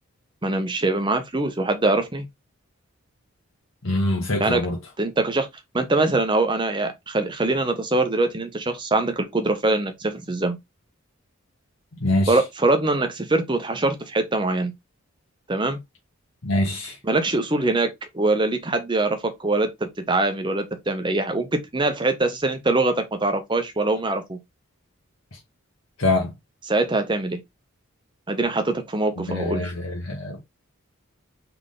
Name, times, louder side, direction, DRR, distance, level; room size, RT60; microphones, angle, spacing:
voice 1, 0.4-2.3 4.4-4.6 5.0-5.5 5.7-10.6 12.3-14.7 15.5-15.8 17.0-24.4 26.7-27.4 28.3-29.7, right 2 dB, 20° right, 0.7 m, -23 dB
voice 2, 3.8-4.8 11.9-12.4 16.4-17.0 26.0-26.3 29.3-30.4, left 2 dB, 65° left, 1.1 m, -24 dB
3.6 x 3.4 x 3.7 m
head